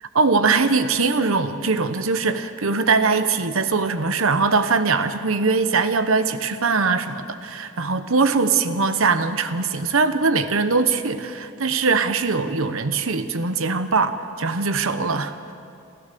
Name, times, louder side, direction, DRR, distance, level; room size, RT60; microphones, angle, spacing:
voice 1, 0.1-15.5, right 4 dB, 70° right, 10 dB, 1.1 m, -21 dB
29.0 x 13.5 x 6.9 m, 2.6 s
head